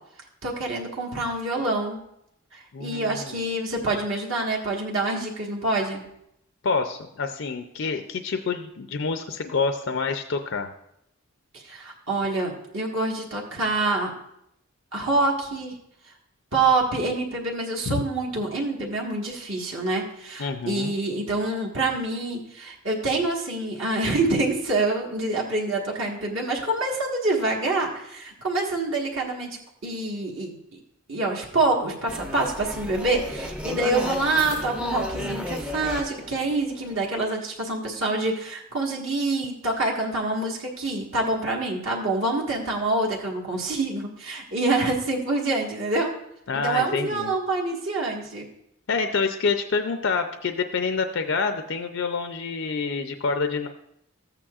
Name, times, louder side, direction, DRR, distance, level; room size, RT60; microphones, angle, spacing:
voice 1, 0.4-2.0 2.5-6.0 11.5-14.1 14.9-15.7 16.5-30.8 31.1-46.1 46.5-48.5, right 2 dB, 60° right, -2 dB, 1.5 m, -26 dB
voice 2, 2.7-3.4 6.6-10.7 17.9-18.0 20.4-20.9 46.5-47.3 48.9-53.7, left 4 dB, 55° left, 6 dB, 0.5 m, -27 dB
sound 1, 32.1-37.2, equal, 5° right, 0.5 m, -33 dB
14.0 x 8.7 x 2.4 m, 0.78 s
head